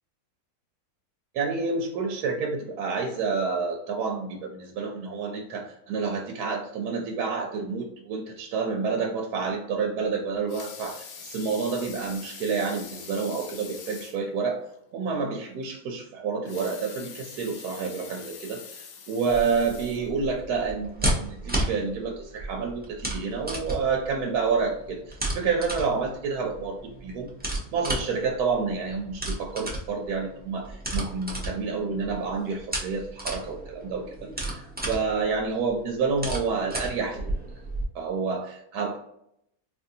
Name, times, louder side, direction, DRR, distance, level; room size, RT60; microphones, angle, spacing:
voice 1, 1.3-27.3 27.7-37.3 37.9-39.0, right 5 dB, 80° right, 1 dB, 1.2 m, -29 dB
Water tap faucet / Sink (filling or washing) / Liquid, 10.3-14.3 14.7-14.8 15.1-15.2 16.3-20.5 21.1-21.2, left 6 dB, 70° left, 1.1 m, -44 dB
sound 1, 19.3-37.8, right 1 dB, 10° right, 0.5 m, -34 dB
4.4 x 2.6 x 2.7 m, 0.76 s
omnidirectional pair, 1.6 m